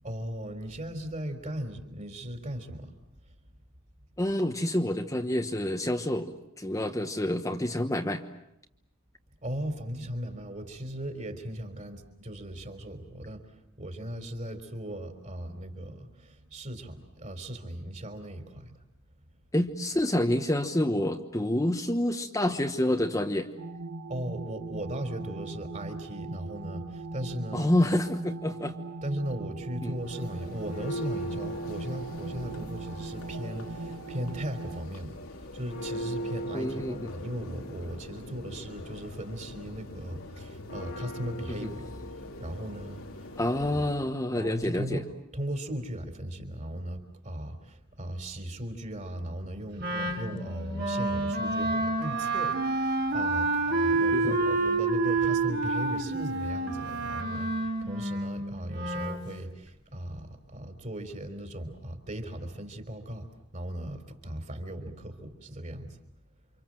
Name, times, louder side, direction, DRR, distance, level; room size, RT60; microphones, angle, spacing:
voice 1, 0.0-2.9 9.4-13.5 13.8-18.7 24.1-27.7 29.0-41.9 42.1-43.2 44.3-63.3 63.5-66.0, right 1 dB, 35° right, 7 dB, 3.7 m, -37 dB
voice 2, 4.2-8.2 19.5-23.5 27.5-28.8 29.8-29.9 36.5-37.1 41.5-41.7 43.4-45.0 54.1-54.5, left 1 dB, 15° left, 4 dB, 1.1 m, -28 dB
sound 1, 23.6-34.8, right 2 dB, 80° right, 1.9 m, -40 dB
Church bell, 29.9-44.1, equal, 90° left, 2.9 m, -40 dB
Wind instrument woodwind instrument, 49.8-59.2, right 3 dB, 50° right, 3.6 m, -28 dB
29.5 x 26.5 x 7.7 m, 0.82 s
head